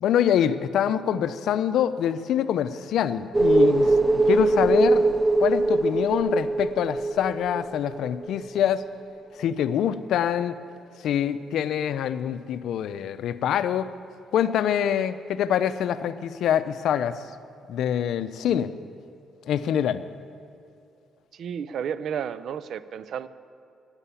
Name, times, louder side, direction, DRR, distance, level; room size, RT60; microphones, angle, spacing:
voice 1, 0.0-3.9 4.3-5.0 5.4-8.8 9.4-10.6 11.0-13.9 14.3-17.2 17.7-18.7 19.5-20.0, left 9 dB, 75° left, 13 dB, 0.5 m, -25 dB
sound 1, 3.3-8.6 8.8-8.9, right 2 dB, 15° right, 0.6 m, -22 dB
voice 2, 21.3-23.3, right 8 dB, 65° right, 15 dB, 0.5 m, -32 dB
11.5 x 9.8 x 8.4 m, 2.6 s
cardioid pair, 90°, 0 cm